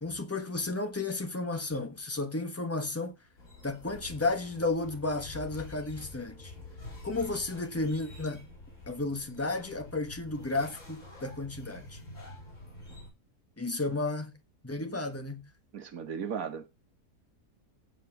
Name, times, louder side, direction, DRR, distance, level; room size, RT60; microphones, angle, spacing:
voice 1, 0.0-3.1 3.6-6.5 7.0-8.4 8.9-12.0 13.6-14.3 14.6-15.4, left 2 dB, 10° left, 1.3 m, -33 dB
sound 1, 3.4-13.1, left 2 dB, 50° left, 5.1 m, -47 dB
voice 2, 15.7-16.7, right 7 dB, 60° right, 1.7 m, -36 dB
7.8 x 7.6 x 5.9 m
omnidirectional pair, 1.7 m